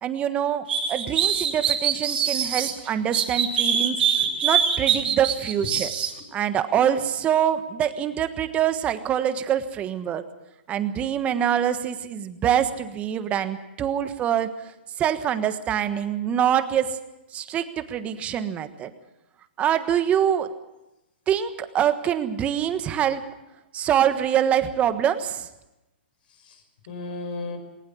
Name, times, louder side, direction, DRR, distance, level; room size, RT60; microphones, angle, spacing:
voice 1, 0.0-4.0 4.4-5.9 6.3-10.2 10.7-14.5 15.0-16.9 17.3-18.9 19.6-20.5 21.3-23.2 23.7-25.5, right 9 dB, 20° right, 10 dB, 1.4 m, -24 dB
sound 1, 0.7-2.7 3.1-6.1, right 8 dB, 65° right, 3.3 m, -23 dB
voice 2, 26.3-27.6, left 3 dB, 55° left, 7 dB, 5.7 m, -36 dB
20.0 x 19.0 x 7.2 m, 0.94 s
hypercardioid pair, 135°, 6 cm